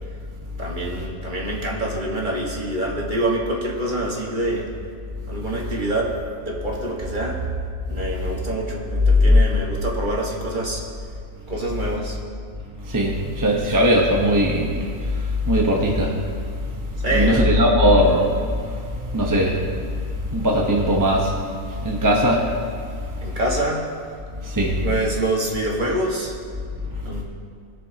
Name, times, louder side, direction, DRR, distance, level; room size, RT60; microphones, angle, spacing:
voice 1, 0.6-4.7 5.3-7.4 7.9-10.8 11.5-12.2 17.0-17.5 23.2-23.9 24.8-26.3 27.0-27.2, right 1 dB, 35° right, -2 dB, 1.7 m, -26 dB
voice 2, 12.9-15.2 15.4-16.2 17.1-18.5 19.1-19.6 20.3-21.4 21.8-22.5 24.4-24.8, equal, 15° right, -2 dB, 0.9 m, -19 dB
21.5 x 7.1 x 2.8 m, 2.3 s
omnidirectional pair, 1.4 m